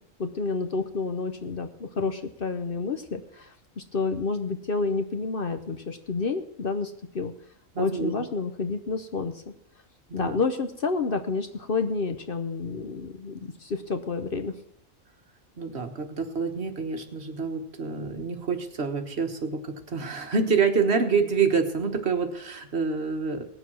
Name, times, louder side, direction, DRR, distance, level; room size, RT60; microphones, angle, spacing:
voice 1, 0.0-7.3 7.8-9.5 10.1-14.5, left 4 dB, 50° left, 8 dB, 0.9 m, -29 dB
voice 2, 7.7-8.1 10.2-10.4 15.6-23.4, right 5 dB, 55° right, 6 dB, 1.5 m, -27 dB
18.5 x 7.1 x 6.2 m, 0.74 s
omnidirectional pair, 1.4 m